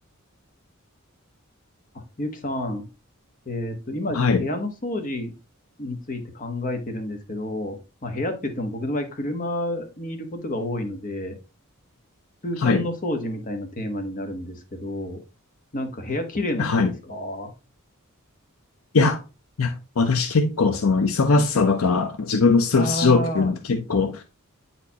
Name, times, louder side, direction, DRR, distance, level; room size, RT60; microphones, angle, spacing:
voice 1, 1.9-2.9 3.4-5.3 5.8-11.3 12.4-15.2 15.7-17.5 22.7-23.6, left 1 dB, 40° left, 1.2 m, -30 dB
voice 2, 16.6-16.9 18.9-19.2 19.6-24.2, left 4 dB, 70° left, 0.6 m, -20 dB
8.7 x 4.3 x 2.8 m
head